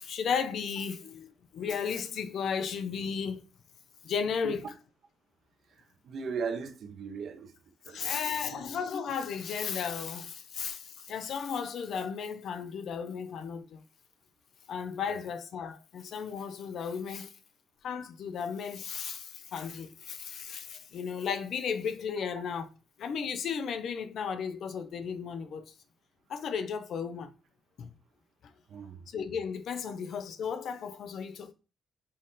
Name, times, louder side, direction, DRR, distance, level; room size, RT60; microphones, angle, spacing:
voice 1, 0.0-3.4 4.0-4.6 7.9-13.8 14.7-17.3 17.8-22.7 23.0-25.6 26.3-27.3 27.8-27.9 29.1-31.5, left 6 dB, 70° left, 0.5 m, -34 dB
voice 2, 5.7-7.5 7.8-8.7 15.1-15.2 28.7-29.1, right 5 dB, 65° right, 0.8 m, -38 dB
4.2 x 2.5 x 3.7 m
supercardioid pair, 65°, 0 cm